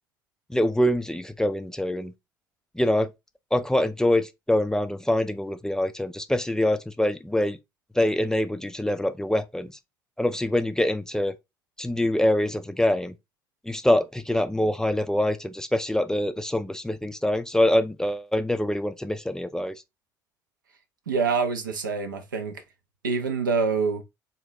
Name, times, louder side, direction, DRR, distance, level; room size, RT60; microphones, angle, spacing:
voice 1, 0.5-2.1 2.8-3.1 3.5-7.6 8.0-9.7 10.2-11.3 11.8-13.1 13.7-19.7, left 1 dB, 5° left, 0.4 m, -24 dB
voice 2, 21.1-22.6 23.0-24.0, right 5 dB, 80° right, 0.5 m, -26 dB
3.8 x 2.3 x 3.6 m
figure-of-eight pair, 50°, 10 cm